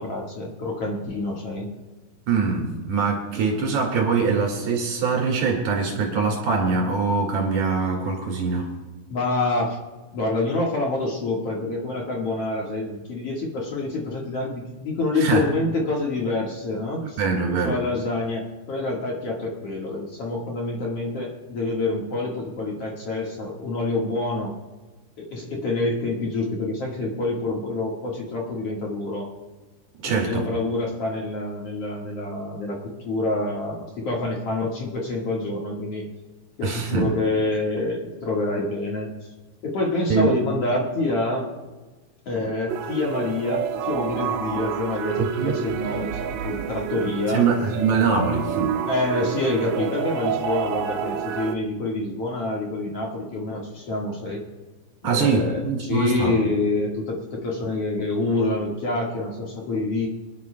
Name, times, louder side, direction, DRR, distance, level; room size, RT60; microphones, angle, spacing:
voice 1, 0.0-1.7 9.1-9.8 10.1-17.2 17.5-24.5 25.2-29.3 30.1-32.8 33.0-36.1 36.6-39.1 39.6-41.5 42.2-47.5 48.9-54.4 55.0-60.1, left 2 dB, 55° left, -2 dB, 1.7 m, -27 dB
voice 2, 2.3-8.7 15.2-15.4 17.2-17.8 30.0-30.4 36.6-37.1 40.1-40.3 45.2-45.6 47.3-48.8 55.0-56.3, right 5 dB, 50° right, -1 dB, 3.0 m, -23 dB
sound 1, 42.7-51.6, right 8 dB, 90° right, 2.1 m, -29 dB
26.5 x 11.0 x 2.2 m, 1.2 s
omnidirectional pair, 5.2 m